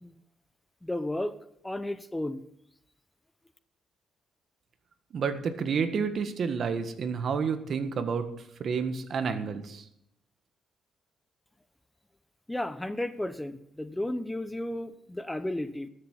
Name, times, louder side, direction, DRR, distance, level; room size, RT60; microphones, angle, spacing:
voice 1, 0.8-1.3 1.6-2.4 12.5-15.9, left 1 dB, 10° left, 12 dB, 0.8 m, -33 dB
voice 2, 5.1-8.3 8.6-9.8, right 6 dB, 55° right, 9 dB, 1.5 m, -30 dB
13.0 x 8.0 x 7.3 m, 0.75 s
cardioid pair, 90°, 0 cm